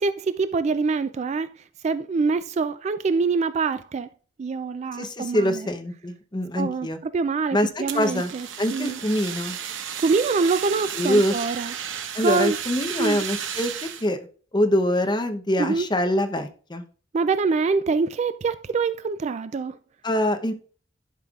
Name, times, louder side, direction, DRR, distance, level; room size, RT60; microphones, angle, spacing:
voice 1, 0.0-1.5 1.8-4.1 4.4-5.7 6.6-9.0 10.0-11.7 12.2-12.6 13.0-13.2 15.6-15.9 17.1-19.8, right 4 dB, 35° right, 0.3 m, -25 dB
voice 2, 5.0-7.0 7.5-7.7 7.9-8.3 8.6-9.6 10.9-11.4 12.1-14.2 14.5-16.8 20.0-20.5, left 1 dB, 25° left, 0.8 m, -24 dB
Fire, 7.9-14.1, right 8 dB, 80° right, 0.9 m, -33 dB
11.5 x 5.4 x 2.4 m
head